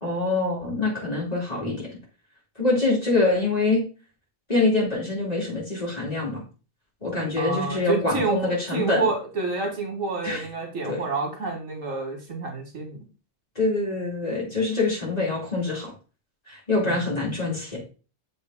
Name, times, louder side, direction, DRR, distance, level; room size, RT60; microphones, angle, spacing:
voice 1, 0.0-1.9 2.6-3.8 4.5-6.4 7.0-9.1 10.2-10.5 10.8-11.0 13.5-15.9 16.5-17.8, left 3 dB, 30° left, -5 dB, 3.0 m, -25 dB
voice 2, 7.4-8.4 8.7-13.0 16.8-17.0, right 3 dB, 75° right, 1 dB, 2.0 m, -28 dB
6.9 x 3.9 x 3.7 m, 0.35 s
omnidirectional pair, 1.4 m